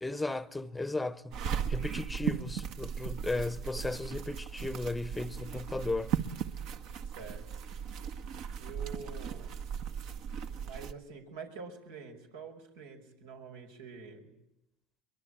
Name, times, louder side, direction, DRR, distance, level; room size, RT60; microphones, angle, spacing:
voice 1, 0.0-1.3 1.7-6.1, left 2 dB, 10° left, 0.9 m, -35 dB
sound 1, 1.3-10.9, right 8 dB, 60° right, 1.7 m, -37 dB
voice 2, 7.0-7.4 8.6-9.5 10.6-14.3, right 5 dB, 90° right, 5.7 m, -46 dB
23.5 x 22.5 x 9.0 m
supercardioid pair, 105°, 0 cm